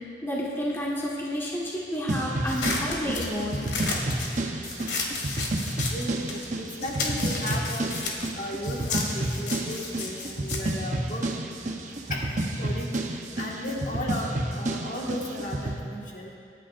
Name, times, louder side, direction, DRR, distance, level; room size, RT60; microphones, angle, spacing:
voice 1, 0.2-3.6, equal, 15° left, -5 dB, 1.5 m, -30 dB
sound 1, 2.1-15.8, right 1 dB, 45° right, 0.9 m, -30 dB
sound 2, 2.5-6.5 6.8-11.6, left 3 dB, 70° left, 1.9 m, -33 dB
voice 2, 5.9-7.9 8.4-11.2 12.1-12.9 13.4-16.3, left 1 dB, 45° left, -3 dB, 1.7 m, -35 dB
26.0 x 10.0 x 2.6 m, 2.4 s
head